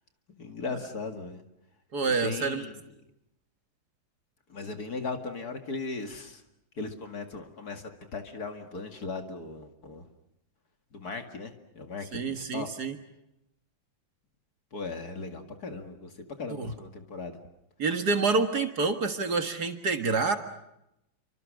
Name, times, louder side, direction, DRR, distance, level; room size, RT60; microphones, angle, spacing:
voice 1, 0.4-1.4 2.0-2.8 4.5-6.4 6.8-10.0 10.9-12.7 14.7-17.4, left 4 dB, 50° left, 5 dB, 2.5 m, -38 dB
voice 2, 1.9-2.6 12.1-13.0 16.6-16.7 17.8-20.4, right 4 dB, 55° right, 7 dB, 2.2 m, -27 dB
28.5 x 25.0 x 6.4 m, 0.86 s
omnidirectional pair, 2.2 m